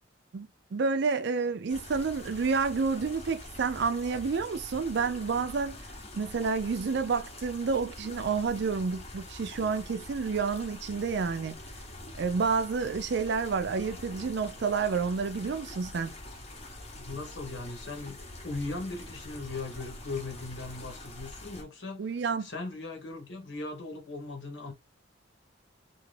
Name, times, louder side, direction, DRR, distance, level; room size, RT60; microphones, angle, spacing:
voice 1, 0.3-5.8 6.2-11.6 12.2-16.1 22.0-22.5, right 5 dB, 60° right, 0.4 m, -29 dB
sound 1, 1.7-21.6, left 1 dB, 35° left, 0.8 m, -45 dB
voice 2, 17.0-18.2 18.4-22.0 22.4-24.7, left 3 dB, 70° left, 1.1 m, -38 dB
2.6 x 2.4 x 3.1 m
head